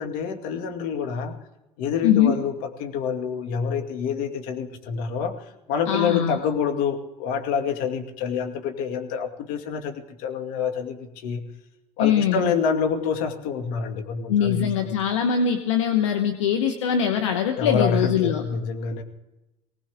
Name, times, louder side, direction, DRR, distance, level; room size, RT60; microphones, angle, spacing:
voice 1, 0.0-1.4 1.8-5.4 5.7-11.4 12.0-14.9 17.6-19.0, left 6 dB, 65° left, 5 dB, 2.2 m, -27 dB
voice 2, 2.0-2.3 5.9-6.4 12.0-12.5 14.3-18.4, left 8 dB, 85° left, 6 dB, 1.2 m, -22 dB
20.0 x 18.5 x 3.6 m, 0.96 s
hypercardioid pair, 85°, 15 cm